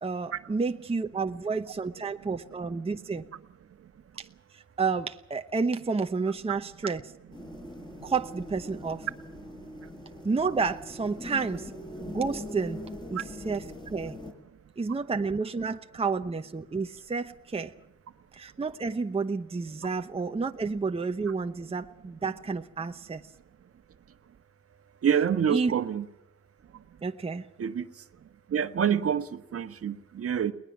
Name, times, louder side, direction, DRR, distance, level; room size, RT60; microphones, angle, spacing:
voice 1, 0.0-3.2 4.2-4.3 4.5-7.0 8.0-9.1 10.2-11.7 12.0-12.8 13.1-14.1 14.8-17.7 18.3-23.2 25.5-25.7 27.0-27.4, right 4 dB, 20° right, 6 dB, 1.0 m, -30 dB
sound 1, 7.3-14.3, left 1 dB, 15° left, 6.0 m, -42 dB
voice 2, 25.0-26.1 27.6-27.9 28.5-30.5, right 8 dB, 50° right, 9 dB, 1.4 m, -27 dB
21.0 x 19.5 x 7.4 m, 0.88 s
cardioid pair, 90°, 30 cm